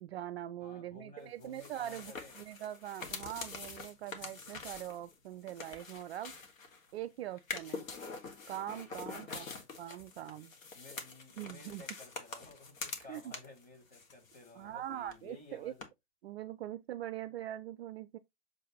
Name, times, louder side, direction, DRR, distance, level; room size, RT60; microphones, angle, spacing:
voice 1, 0.0-6.3 6.9-7.9 8.5-9.5 9.8-10.5 11.4-11.8 13.1-13.2 14.6-15.7 16.2-18.2, right 12 dB, 50° right, 0.4 m, -42 dB
voice 2, 0.6-2.4 9.1-9.7 10.7-15.9, left 3 dB, 20° left, 3.9 m, -54 dB
sound 1, 1.4-6.9 7.4-13.6 13.9-14.8 15.1-15.2 15.8-15.9, left 4 dB, 65° left, 1.7 m, -45 dB
7.4 x 3.4 x 4.0 m
figure-of-eight pair, 100°, 43 cm